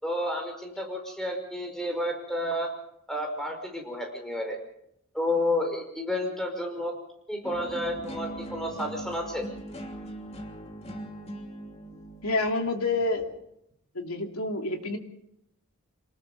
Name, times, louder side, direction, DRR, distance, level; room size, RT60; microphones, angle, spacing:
voice 1, 0.0-2.7 3.1-4.6 5.1-6.9 7.3-9.5, left 1 dB, ahead, 2 dB, 5.2 m, -31 dB
sound 1, 7.4-13.5, right 1 dB, 30° left, 3.1 m, -41 dB
voice 2, 12.2-13.3 13.9-15.0, left 2 dB, 75° left, 3 dB, 3.0 m, -28 dB
27.0 x 20.0 x 5.4 m, 0.78 s
head